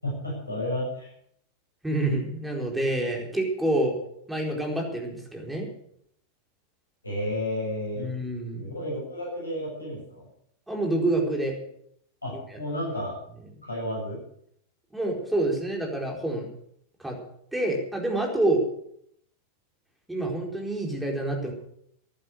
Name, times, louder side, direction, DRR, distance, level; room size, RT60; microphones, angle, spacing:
voice 1, 0.0-1.1 7.0-8.1 8.6-10.3 12.2-13.2 13.6-14.2, left 1 dB, 80° left, -2 dB, 7.3 m, -32 dB
voice 2, 1.8-3.9 4.3-5.7 8.0-8.7 10.7-11.5 12.5-12.6 14.9-16.5 17.0-17.2 17.5-18.6 20.1-21.5, right 1 dB, 5° right, 0 dB, 4.3 m, -27 dB
15.0 x 11.0 x 6.6 m, 0.70 s
figure-of-eight pair, 90°, 0 cm